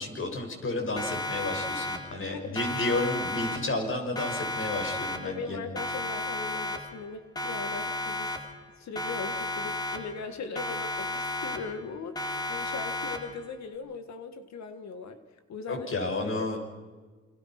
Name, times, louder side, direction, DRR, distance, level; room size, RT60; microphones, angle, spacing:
voice 1, 0.0-5.8 15.7-16.6, left 2 dB, 45° left, 2 dB, 6.4 m, -31 dB
Siren, 1.0-2.3 2.6-3.9 4.2-5.5 5.8-7.1 7.4-8.7 9.0-10.3 10.6-11.9 12.2-13.5, left 2 dB, 15° left, 3.5 m, -33 dB
voice 2, 2.2-2.6 5.2-8.4 8.8-16.3, left 5 dB, 65° left, 9 dB, 1.9 m, -39 dB
28.5 x 23.5 x 6.0 m, 1.4 s
cardioid pair, 90°, 30 cm